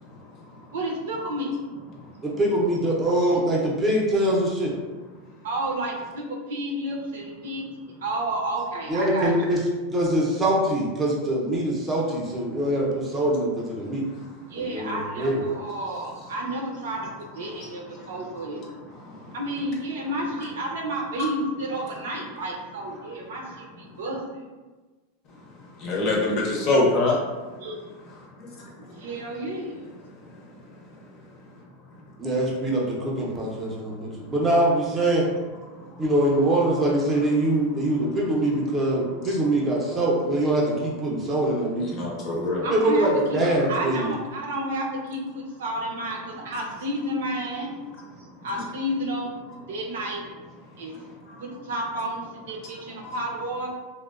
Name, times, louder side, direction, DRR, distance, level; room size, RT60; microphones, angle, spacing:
voice 1, 0.7-1.6 5.4-7.6 8.0-9.3 14.5-17.1 17.3-18.6 19.3-24.4 27.6-27.8 28.9-29.9 42.6-43.4 43.7-47.8 48.4-49.4 49.7-50.2 50.8-50.9 51.4-53.7, right 1 dB, 85° right, 0 dB, 0.6 m, -31 dB
voice 2, 2.2-4.7 8.9-9.6 9.9-14.0 14.6-15.5 32.2-35.3 36.0-42.0 42.7-44.1, right 1 dB, 15° right, -3 dB, 0.6 m, -23 dB
voice 3, 17.9-18.5 19.0-19.4 25.8-27.2 28.6-28.7 35.9-36.0 41.9-42.7 51.3-51.4 53.0-53.1, left 2 dB, 40° left, -1 dB, 0.6 m, -25 dB
2.9 x 2.1 x 2.4 m, 1.3 s
supercardioid pair, 145°, 0 cm